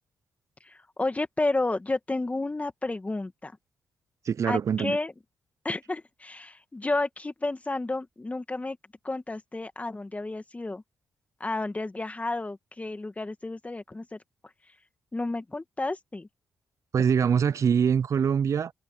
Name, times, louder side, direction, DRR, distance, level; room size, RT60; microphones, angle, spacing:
voice 1, 0.7-3.5 4.5-5.1 5.6-8.8 9.0-10.8 11.4-14.2 15.1-16.3, left 2 dB, 25° left, 2.3 m, -31 dB
voice 2, 4.2-5.0 16.9-18.7, right 7 dB, 55° right, 0.6 m, -24 dB
supercardioid pair, 50°, 6 cm